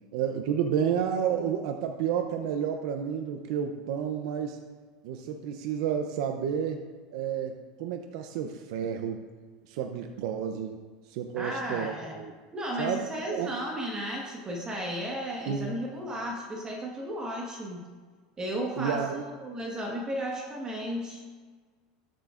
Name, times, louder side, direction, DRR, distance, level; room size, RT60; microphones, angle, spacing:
voice 1, 0.1-4.6 5.0-6.8 7.1-9.2 9.7-10.8 11.1-12.3 12.8-13.5 15.5-15.8 18.8-19.2, right 8 dB, 70° right, 5 dB, 0.6 m, -31 dB
voice 2, 11.4-12.1 12.5-17.8 18.4-21.2, equal, 20° right, -1 dB, 1.4 m, -34 dB
13.5 x 7.6 x 2.5 m, 1.5 s
supercardioid pair, 125°, 3 cm